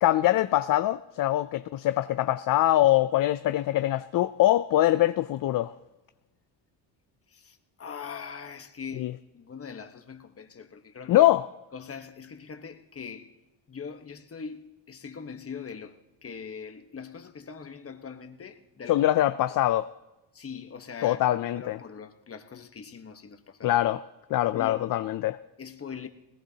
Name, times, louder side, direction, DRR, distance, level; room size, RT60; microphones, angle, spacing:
voice 1, 0.0-5.7 8.9-9.1 11.1-11.5 18.9-19.9 21.0-21.8 23.6-24.0 24.3-25.4, left 14 dB, 50° left, 0.5 m, -23 dB
voice 2, 7.3-11.3 11.7-13.3 13.7-19.1 19.4-19.5 20.3-23.8 24.5-25.0 25.6-26.1, left 6 dB, 30° left, 1.2 m, -42 dB
20.0 x 18.0 x 2.9 m
cardioid pair, 85°, 45 cm